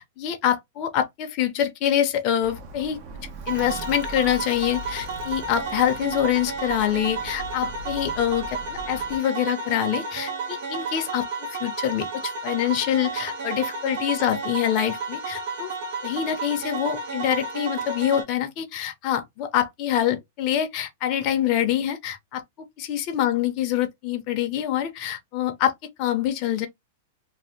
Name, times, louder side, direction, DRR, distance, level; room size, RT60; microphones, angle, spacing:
voice 1, 0.0-3.0 3.5-15.7 16.0-22.4 22.8-25.7 26.0-26.7, left 11 dB, 40° left, 0.6 m, -25 dB
Alarm, 2.4-9.2, right 2 dB, 40° right, 0.7 m, -40 dB
sound 1, 3.5-18.2, right 3 dB, 65° right, 1.0 m, -32 dB
2.7 x 2.1 x 3.5 m
hypercardioid pair, 145°, 0 cm